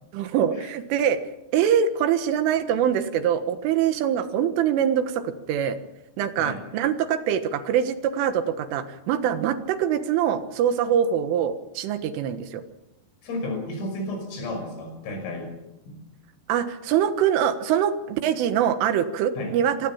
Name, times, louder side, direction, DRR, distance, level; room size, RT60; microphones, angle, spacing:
voice 1, 0.1-1.2 1.5-5.8 6.2-12.6 16.5-19.9, right 9 dB, 80° right, 10 dB, 3.9 m, -24 dB
voice 2, 13.2-15.5 15.9-16.0 19.4-19.5, left 1 dB, 90° left, 5 dB, 8.3 m, -32 dB
26.0 x 19.0 x 7.2 m, 0.94 s
omnidirectional pair, 5.7 m